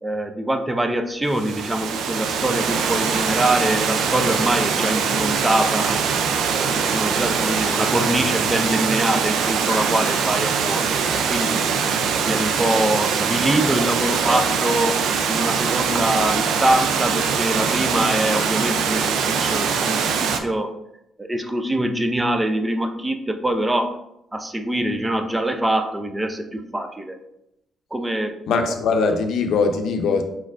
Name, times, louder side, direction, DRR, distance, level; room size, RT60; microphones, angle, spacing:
voice 1, 0.0-6.0 6.5-10.9 11.3-11.6 12.2-20.7 21.2-24.0 24.3-27.2 27.9-28.4, right 1 dB, 15° right, 7 dB, 0.4 m, -24 dB
Water, 1.3-20.4, right 6 dB, 80° right, 0.4 m, -22 dB
voice 2, 28.5-30.2, left 4 dB, 75° left, 5 dB, 0.6 m, -21 dB
4.4 x 4.3 x 2.4 m, 0.83 s
cardioid pair, 90°, 0 cm